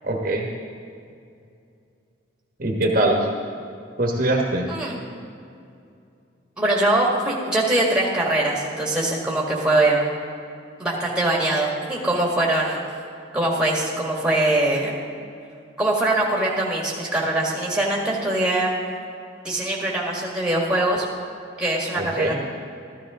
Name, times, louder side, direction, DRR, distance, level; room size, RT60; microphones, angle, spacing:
voice 1, 0.0-0.5 2.6-3.3 4.0-4.7 21.9-22.4, right 1 dB, 45° right, 0 dB, 1.3 m, -22 dB
voice 2, 6.6-10.0 10.8-12.8 13.3-14.9 15.8-18.7 19.4-21.1 21.6-22.4, right 1 dB, 5° right, -3 dB, 1.9 m, -22 dB
14.0 x 13.0 x 3.8 m, 2.5 s
head